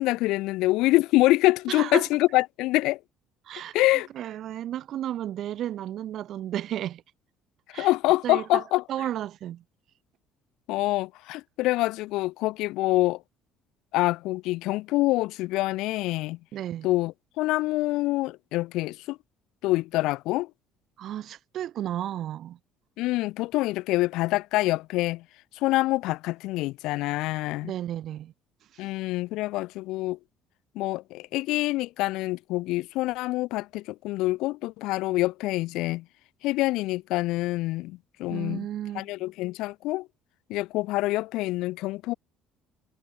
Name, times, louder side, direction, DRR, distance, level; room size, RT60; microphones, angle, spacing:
voice 1, 0.0-3.0 3.7-4.1 7.7-8.8 10.7-13.2 13.9-16.4 16.8-19.2 19.6-20.5 23.0-25.2 25.5-27.7 28.8-30.2 30.8-36.0 36.4-38.7 38.9-40.1 40.5-42.1, left 19 dB, 65° left, 0.3 m, -26 dB
voice 2, 1.7-2.1 3.5-3.7 4.1-7.0 7.7-7.9 8.2-8.6 8.9-9.6 16.5-16.9 21.0-22.6 27.6-28.3 38.3-39.1, right 11 dB, 45° right, 0.7 m, -33 dB
cardioid pair, 175°, 0 cm